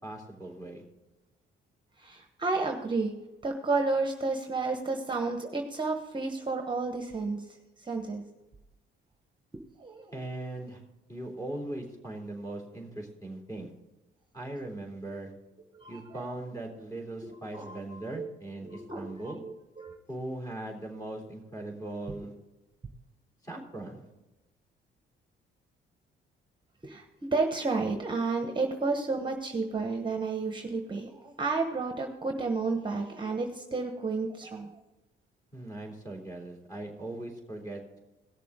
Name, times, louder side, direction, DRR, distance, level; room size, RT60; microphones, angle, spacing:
voice 1, 0.0-0.8 10.1-10.8 11.1-13.7 14.3-15.3 15.9-19.4 20.1-22.3 23.4-24.1 35.5-38.0, right 1 dB, 20° left, 1 dB, 3.5 m, -39 dB
voice 2, 2.0-3.1 3.4-7.5 7.8-8.2 9.8-10.2 15.7-16.2 17.2-18.3 18.6-20.0 26.8-34.8, right 3 dB, 25° right, 4 dB, 1.1 m, -32 dB
17.0 x 6.9 x 3.7 m, 1.0 s
cardioid pair, 90°, 20 cm